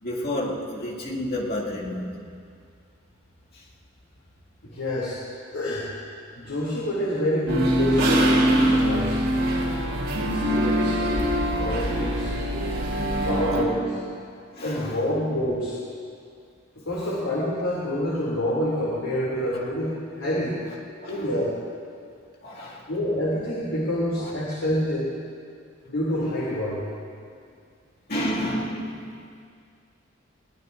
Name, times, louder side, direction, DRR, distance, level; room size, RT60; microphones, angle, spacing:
voice 1, 0.0-2.3 3.5-3.6 14.5-15.1 19.5-19.9 21.0-21.4 22.4-22.9 24.2-24.3 26.1-26.7 28.1-29.2, left 1 dB, 50° left, -4 dB, 2.3 m, -31 dB
voice 2, 4.6-5.2 5.5-5.9 6.4-9.2 10.3-11.0 11.6-12.3 13.2-14.0 14.6-15.8 16.8-20.6 21.1-21.5 22.9-25.1 25.9-26.8, equal, 90° left, -6 dB, 2.8 m, -27 dB
sound 1, 7.5-13.6, equal, 90° right, 3.0 m, -23 dB
21.5 x 18.0 x 2.6 m, 2.3 s
head